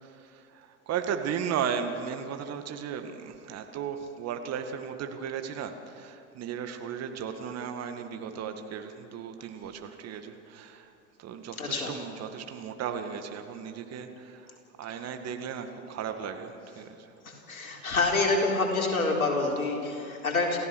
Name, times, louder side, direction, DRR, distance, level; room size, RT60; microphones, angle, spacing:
voice 1, 0.0-10.9 11.2-17.1 17.7-17.8, right 7 dB, 35° right, 7 dB, 2.1 m, -36 dB
voice 2, 11.6-11.9 17.3-20.6, left 3 dB, 80° left, 0 dB, 4.0 m, -27 dB
29.0 x 15.5 x 6.4 m, 2.8 s
figure-of-eight pair, 80°, 42 cm